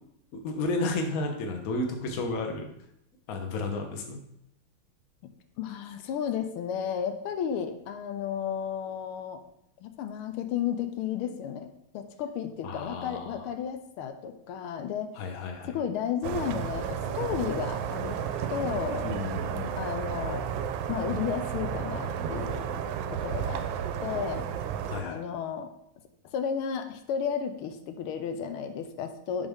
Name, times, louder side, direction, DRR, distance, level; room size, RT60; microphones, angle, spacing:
voice 1, 0.4-2.7 3.3-4.2 12.6-13.4 15.2-15.8 19.0-19.7 24.9-25.2, left 2 dB, 50° left, 3 dB, 1.2 m, -32 dB
voice 2, 5.6-9.4 9.8-11.7 11.9-15.1 15.7-18.2 18.5-19.1 19.8-20.4 20.9-22.8 23.1-23.7 24.0-24.5 25.0-25.7 26.3-29.5, left 8 dB, 90° left, 8 dB, 1.5 m, -33 dB
sound 1, 16.2-25.0, right 8 dB, 75° right, 1.3 m, -32 dB
10.5 x 4.0 x 3.5 m, 0.78 s
omnidirectional pair, 2.3 m